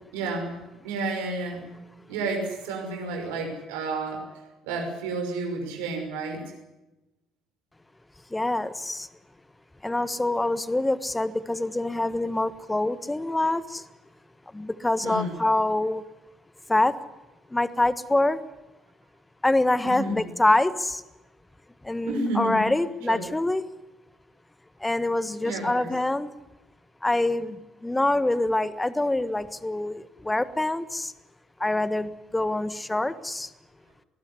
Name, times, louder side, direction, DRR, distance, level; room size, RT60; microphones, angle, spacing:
voice 1, 0.1-0.6 0.8-1.7 2.1-6.4 15.0-15.4 19.8-20.2 22.1-22.6 23.0-23.2 25.4-25.9, right 2 dB, 70° right, 3 dB, 6.0 m, -31 dB
voice 2, 8.3-9.1 9.8-13.8 14.5-16.0 16.7-16.9 17.5-18.4 19.4-21.0 21.8-23.6 24.8-26.3 27.0-31.1 31.6-33.5, left 2 dB, 10° left, 15 dB, 1.5 m, -25 dB
21.0 x 19.5 x 9.9 m, 1.0 s
figure-of-eight pair, 50°, 0 cm